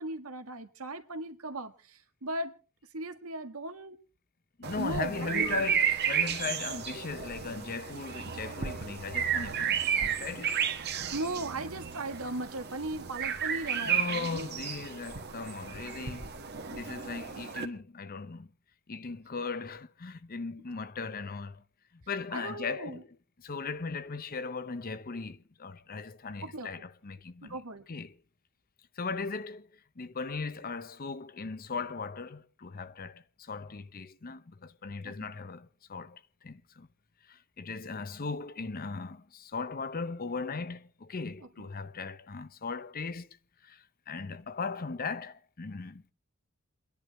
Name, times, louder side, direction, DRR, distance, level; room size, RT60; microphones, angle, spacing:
voice 1, 0.0-2.5 2.9-4.0 4.7-5.7 11.1-14.5 22.3-23.0 26.4-26.7 27.4-27.9 35.0-35.3 41.6-41.7, right 2 dB, 90° right, 1.7 m, -37 dB
voice 2, 4.6-10.6 13.8-16.4 16.7-18.5 18.9-21.6 22.1-27.6 27.9-28.1 29.0-36.9 37.3-43.4 43.6-46.1, left 4 dB, 45° left, 0.7 m, -38 dB
sound 1, 4.6-17.7, right 7 dB, 50° right, 1.4 m, -33 dB
29.5 x 10.5 x 3.1 m
head